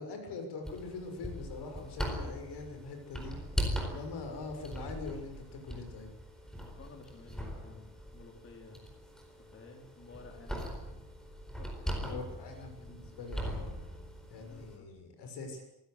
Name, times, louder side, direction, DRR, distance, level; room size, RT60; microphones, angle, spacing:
voice 1, 0.0-3.3 3.8-6.1 12.0-13.7 14.3-15.6, left 3 dB, 85° left, 5 dB, 6.9 m, -43 dB
sound 1, 0.6-14.8, equal, ahead, 4.5 m, -40 dB
voice 2, 6.6-8.8 9.5-10.7 11.6-12.2 14.4-15.0, left 4 dB, 35° left, 2 dB, 3.8 m, -53 dB
26.0 x 16.0 x 8.3 m, 0.84 s
cardioid pair, 170°, 39 cm